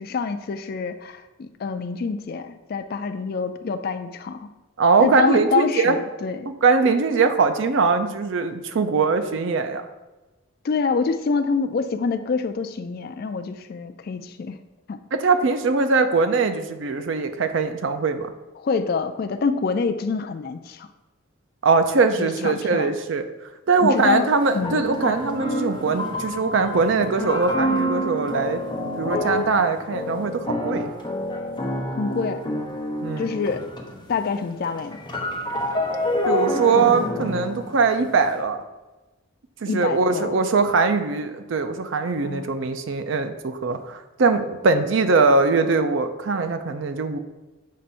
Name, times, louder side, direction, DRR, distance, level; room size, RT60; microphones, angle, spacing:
voice 1, 0.0-4.5 5.0-6.5 10.6-14.6 14.9-15.0 18.6-20.9 22.2-22.9 23.8-24.3 24.5-24.9 31.9-32.4 33.2-33.6 34.1-35.0 39.6-40.4 42.2-42.5, left 5 dB, 45° left, 9 dB, 0.3 m, -26 dB
voice 2, 4.8-6.0 6.5-9.9 15.1-18.3 21.6-23.2 23.7-28.6 29.0-30.9 33.0-33.3 36.2-38.6 39.6-47.2, right 4 dB, 60° right, 8 dB, 0.4 m, -21 dB
sound 1, 23.7-23.8 24.6-34.1 34.4-38.3, left 1 dB, 20° left, 0.8 m, -28 dB
7.3 x 2.6 x 5.4 m, 1.2 s
head